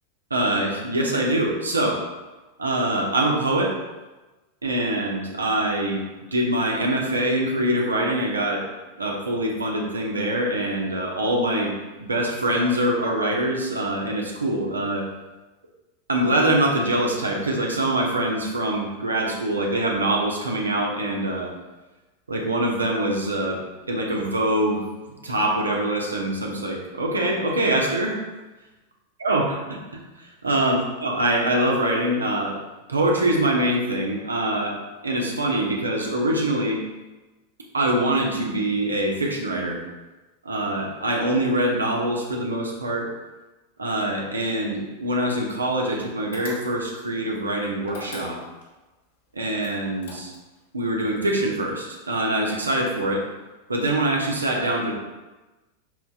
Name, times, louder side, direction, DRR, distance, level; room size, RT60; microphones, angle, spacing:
voice 1, 0.3-2.0 2.6-3.7 4.6-6.0 6.3-8.6 9.0-11.7 12.0-15.1 16.1-21.5 22.3-23.6 23.9-24.8 25.2-28.2 29.2-32.6 32.9-34.8 35.0-36.8 37.7-39.8 40.4-43.1 43.8-48.4 49.3-50.3 50.7-53.3 53.7-54.9, right 1 dB, 75° right, 0 dB, 1.0 m, -24 dB
sound 1, 46.3-47.0 47.8-48.7 49.6-50.6, left 3 dB, 60° left, 1.3 m, -41 dB
10.5 x 4.2 x 2.4 m, 1.1 s
figure-of-eight pair, 90°, 0 cm